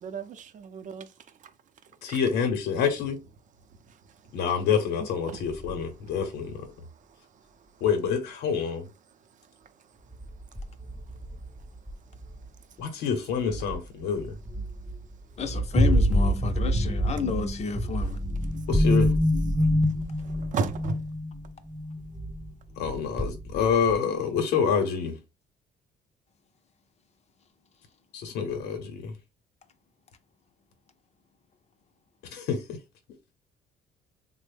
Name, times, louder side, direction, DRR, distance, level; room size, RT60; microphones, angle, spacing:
voice 1, 0.0-1.1 2.1-2.2 5.3-5.4 19.6-19.7 20.2-21.0, right 4 dB, 50° right, 0.5 m, -33 dB
voice 2, 2.0-3.2 4.3-6.7 7.8-8.9 12.8-14.3 18.7-19.2 22.8-25.2 28.1-29.1 32.3-32.8, left 6 dB, 80° left, 0.7 m, -27 dB
sound 1, 5.6-5.7 10.1-12.4 13.5-13.8 14.2-15.0 15.4-22.5 22.8-23.9, equal, 5° right, 0.6 m, -26 dB
voice 3, 15.4-18.2, left 5 dB, 40° left, 0.5 m, -31 dB
3.4 x 2.1 x 3.3 m
cardioid pair, 110°, 17 cm